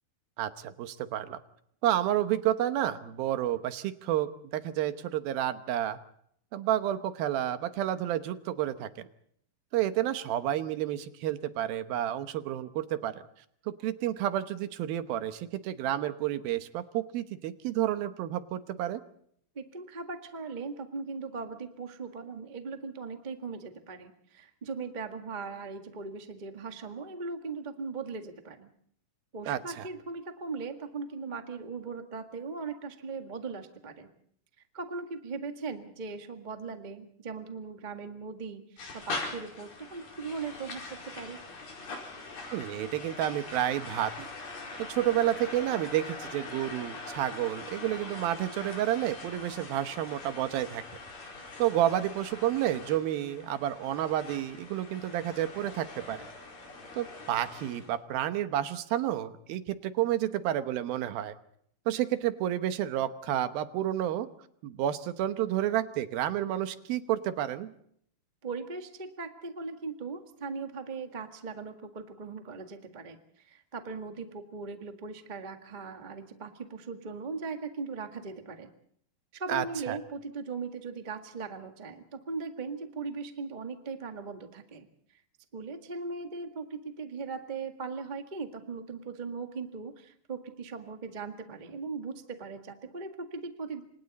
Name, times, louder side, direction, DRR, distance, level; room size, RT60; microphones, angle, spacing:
voice 1, 0.4-1.4 1.8-6.0 6.5-9.1 9.7-13.1 13.7-19.0 29.5-29.6 42.5-44.3 44.9-50.8 51.6-56.3 57.0-61.4 61.9-64.3 64.6-67.7 79.5-80.0, right 12 dB, 80° right, 10 dB, 2.9 m, -30 dB
voice 2, 19.5-28.7 29.3-34.1 34.7-41.4 68.4-78.7 79.3-84.9 85.5-93.8, right 4 dB, 45° right, 5 dB, 0.5 m, -39 dB
sound 1, 38.8-57.9, left 3 dB, 65° left, 6.4 m, -42 dB
29.0 x 26.0 x 4.2 m, 0.67 s
omnidirectional pair, 4.2 m